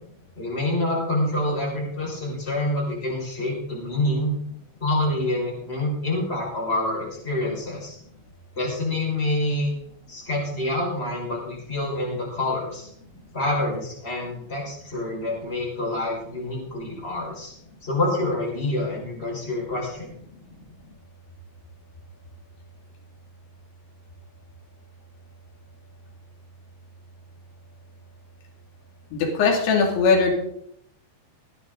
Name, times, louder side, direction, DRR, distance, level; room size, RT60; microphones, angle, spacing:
voice 1, 0.4-4.4 4.8-8.0 8.6-9.7 10.1-12.9 13.3-17.5 17.8-20.1, left 1 dB, 15° left, -3 dB, 5.3 m, -27 dB
voice 2, 29.1-30.3, left 5 dB, 80° left, 0 dB, 4.9 m, -20 dB
19.5 x 10.0 x 3.9 m, 0.71 s
omnidirectional pair, 5.3 m